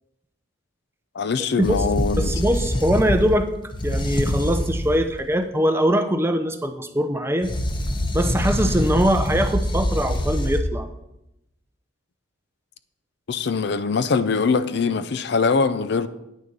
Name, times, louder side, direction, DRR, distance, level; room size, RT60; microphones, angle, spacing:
voice 1, 1.1-2.3 13.3-16.1, left 4 dB, 55° left, 0.5 m, -22 dB
sound 1, 1.6-5.1 7.4-10.6, left 1 dB, 25° left, 0.8 m, -25 dB
voice 2, 2.2-3.5 3.8-7.5 8.1-10.9, equal, 10° right, 0.5 m, -22 dB
9.3 x 6.7 x 5.2 m
head